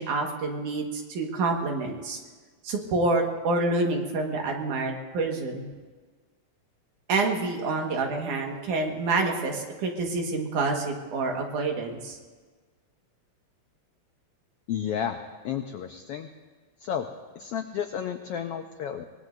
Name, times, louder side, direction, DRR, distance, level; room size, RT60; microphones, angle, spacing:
voice 1, 0.0-2.2 2.6-5.7 7.1-12.2, right 3 dB, 80° right, 1 dB, 3.1 m, -27 dB
voice 2, 14.7-15.2 15.4-16.3 16.8-17.1 17.4-19.1, left 8 dB, 85° left, 6 dB, 1.3 m, -32 dB
23.5 x 20.5 x 2.7 m, 1.4 s
omnidirectional pair, 3.5 m